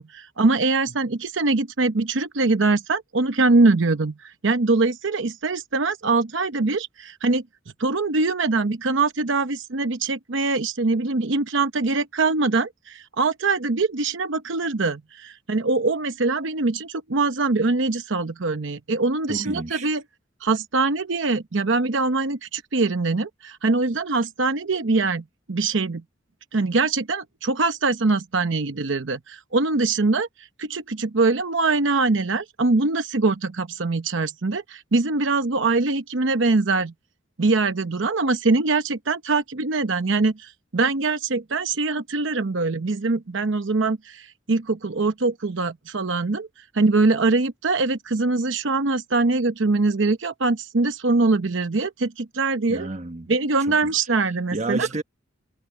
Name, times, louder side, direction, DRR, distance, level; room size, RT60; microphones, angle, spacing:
voice 1, 0.0-7.4 7.8-20.0 20.4-26.0 26.5-36.9 37.4-46.5 46.7-52.9 53.3-54.9, right 3 dB, 70° right, 0.8 m, -23 dB
voice 2, 19.3-19.9 52.7-53.3 53.7-53.8 54.5-55.0, right 2 dB, 35° right, 1.3 m, -30 dB
head